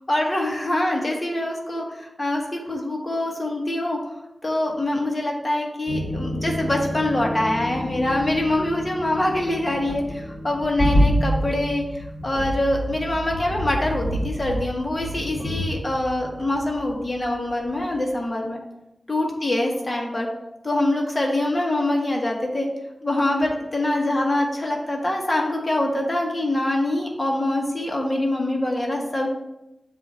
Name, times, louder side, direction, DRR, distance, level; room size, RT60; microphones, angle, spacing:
voice 1, 0.1-4.0 4.4-18.6 19.1-20.3 20.6-22.7 23.0-29.3, left 1 dB, 30° left, 0 dB, 1.3 m, -24 dB
sound 1, 5.9-17.4 17.7-17.9, equal, 50° left, 1.5 m, -28 dB
7.8 x 2.8 x 5.4 m, 0.92 s
wide cardioid pair, 105°, 0 cm